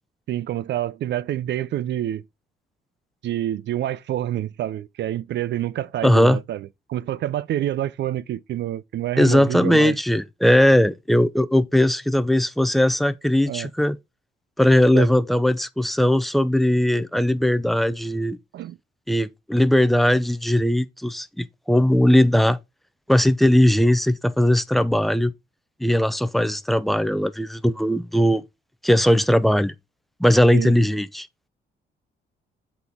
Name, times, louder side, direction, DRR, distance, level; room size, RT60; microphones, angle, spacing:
voice 1, 0.3-2.2 3.2-10.0 13.5-13.7 14.9-15.1 18.5-18.8 30.5-30.8, right 12 dB, 65° right, 0.4 m, -27 dB
voice 2, 6.0-6.4 9.2-14.0 14.6-18.4 19.1-22.6 23.1-25.3 25.8-28.4 28.8-29.7 30.2-31.3, left 1 dB, ahead, 0.5 m, -19 dB
7.9 x 4.1 x 3.6 m
cardioid pair, 90°, 20 cm